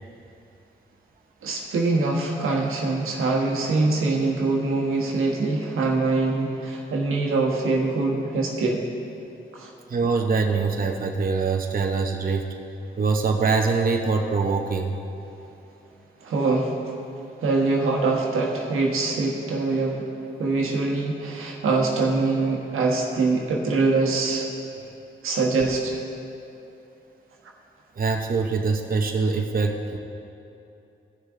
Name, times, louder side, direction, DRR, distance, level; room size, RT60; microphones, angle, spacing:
voice 1, 1.4-8.8 9.5-9.7 16.2-16.8 17.4-20.1 20.4-24.5 25.2-26.0, right 3 dB, 85° right, 0 dB, 1.3 m, -23 dB
voice 2, 9.9-12.5 13.0-14.9 28.0-30.0, right 4 dB, 45° right, 3 dB, 0.8 m, -23 dB
16.0 x 6.4 x 3.7 m, 2.7 s
cardioid pair, 55°, 21 cm